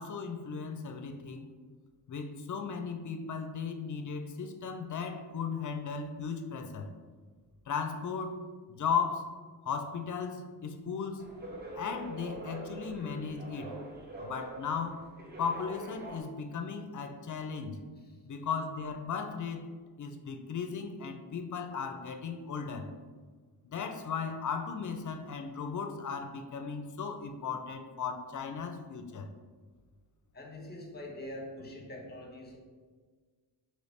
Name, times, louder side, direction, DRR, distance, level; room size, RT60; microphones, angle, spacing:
voice 1, 0.0-1.5 2.1-6.9 7.7-8.4 8.7-9.3 9.6-11.3 11.7-13.8 14.2-15.0 15.4-17.8 18.2-19.7 20.0-22.9 23.6-29.3, left 6 dB, 45° left, 6 dB, 0.5 m, -36 dB
sound 1, 11.2-16.2, right 1 dB, 25° right, 0.7 m, -44 dB
voice 2, 30.3-32.6, left 1 dB, 25° left, 0 dB, 1.0 m, -44 dB
4.2 x 3.0 x 3.2 m, 1.5 s
cardioid pair, 90°, 42 cm